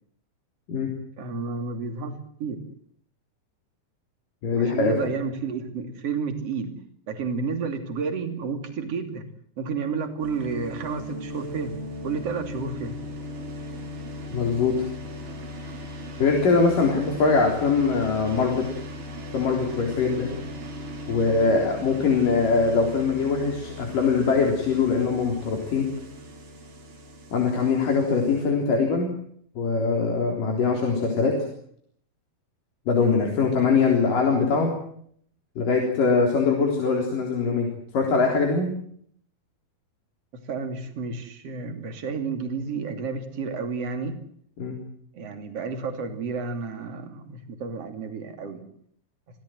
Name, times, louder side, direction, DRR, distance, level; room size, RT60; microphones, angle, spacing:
voice 1, 1.2-2.1 2.4-2.7 4.6-6.7 7.1-9.3 9.6-11.7 12.0-13.0 33.0-33.2 40.3-44.2 45.1-48.6, right 5 dB, 45° right, 7 dB, 3.6 m, -31 dB
voice 2, 4.4-4.9 14.3-14.8 16.2-18.7 19.3-20.3 21.1-25.9 27.3-29.1 29.6-31.4 32.9-34.7 35.6-37.7 37.9-38.7 44.6-44.8, left 4 dB, 65° left, 1 dB, 5.4 m, -22 dB
sound 1, 10.2-28.5, left 1 dB, 60° right, 5.7 m, -38 dB
27.0 x 18.0 x 7.9 m, 0.64 s
omnidirectional pair, 4.2 m